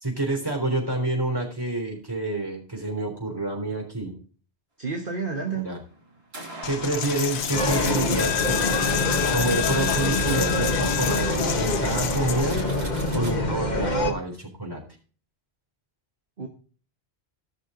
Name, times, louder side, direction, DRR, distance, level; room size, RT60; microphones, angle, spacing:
voice 1, 0.0-4.1 5.5-5.8 6.6-8.7 9.3-12.6 13.1-14.8, right 2 dB, 20° right, 0 dB, 3.7 m, -28 dB
voice 2, 4.8-5.7 16.4-16.5, right 5 dB, 55° right, 1 dB, 1.6 m, -29 dB
sound 1, 5.1-9.9 10.2-10.3 10.8-10.9 11.3-11.5 11.9-12.0 12.3-13.3, right 2 dB, 70° right, 2.8 m, -43 dB
Coin (dropping), 6.6-12.6, left 9 dB, 80° left, 1.1 m, -28 dB
sound 2, 7.5-14.1, left 2 dB, 40° left, 1.5 m, -25 dB
15.5 x 6.3 x 3.8 m, 0.40 s
omnidirectional pair, 1.1 m